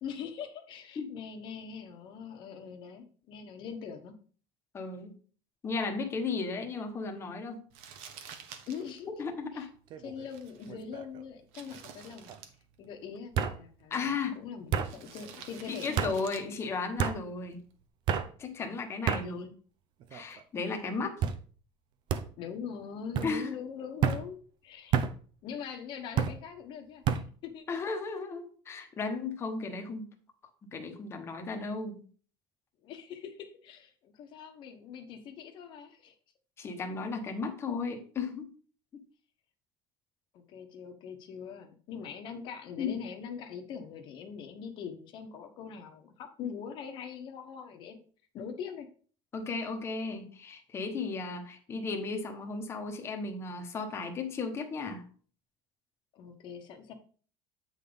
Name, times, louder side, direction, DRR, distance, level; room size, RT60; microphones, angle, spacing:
voice 1, 0.0-4.1 8.7-9.2 9.5-9.7 10.0-12.3 12.8-15.9 19.0-19.5 22.4-24.3 24.6-25.0 25.4-27.6 32.8-36.1 40.3-48.0 48.3-48.9 56.1-56.9, left 7 dB, 45° left, 6 dB, 1.1 m, -42 dB
voice 2, 4.7-5.1 5.6-7.6 9.2-9.7 13.9-14.4 15.7-17.6 18.4-19.4 20.1-21.2 23.2-23.5 27.7-30.1 30.7-32.0 36.6-38.5 42.8-43.0 49.3-55.0, left 4 dB, 25° left, 4 dB, 1.1 m, -35 dB
Crumpling crinkling, 7.7-17.9, right 7 dB, 70° right, 1.2 m, -52 dB
sound 1, 9.9-10.3 10.7-11.2 12.3-12.4 13.4-13.6 14.7-14.9 16.0-16.2 17.0-17.2 18.1-18.3 19.1-19.3 20.0-20.4 21.2-21.4 22.1-22.3 23.1-23.3 24.0-24.2 24.9-25.1 26.2-26.4 27.1-27.3, right 7 dB, 45° right, 0.6 m, -29 dB
8.3 x 3.9 x 5.1 m, 0.43 s
cardioid pair, 160°, 11 cm